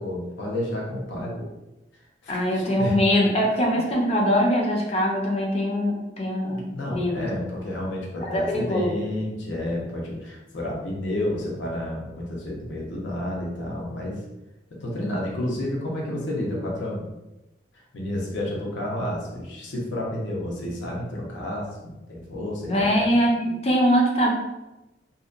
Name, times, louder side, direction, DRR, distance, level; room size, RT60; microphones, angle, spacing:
voice 1, 0.0-1.5 2.2-3.0 6.4-14.2 14.8-17.1 17.9-23.1, left 1 dB, 90° left, -3 dB, 0.7 m, -30 dB
voice 2, 2.3-7.3 8.2-8.9 22.6-24.3, equal, 35° left, -1 dB, 0.4 m, -22 dB
2.7 x 2.1 x 2.4 m, 0.99 s
head